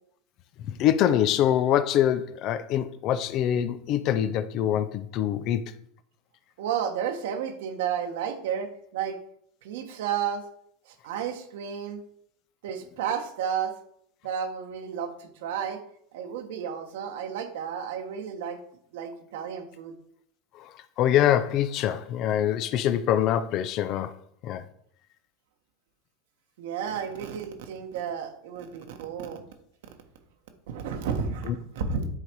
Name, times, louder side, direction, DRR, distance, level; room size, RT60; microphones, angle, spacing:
voice 1, 0.7-5.7 20.6-20.7 21.0-24.1 24.4-24.6 31.5-31.6, left 11 dB, 50° left, 0.6 m, -24 dB
voice 2, 6.6-9.2 9.6-10.4 10.9-12.0 12.6-13.7 14.2-15.8 16.1-18.6 18.9-19.9 26.6-29.4 30.7-32.1, right 7 dB, 80° right, 1.3 m, -32 dB
9.8 x 4.0 x 4.6 m
supercardioid pair, 115°, 0 cm